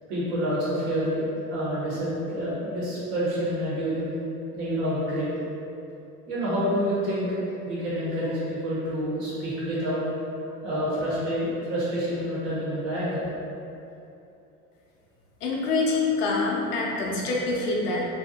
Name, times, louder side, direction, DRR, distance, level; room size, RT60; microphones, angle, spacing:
voice 1, 0.1-4.1 4.5-5.3 6.3-10.0 10.6-13.2, equal, 60° right, -8 dB, 1.3 m, -28 dB
voice 2, 15.4-18.1, left 3 dB, 80° left, -2 dB, 0.7 m, -25 dB
2.8 x 2.6 x 2.7 m, 2.8 s
hypercardioid pair, 75°, 45 cm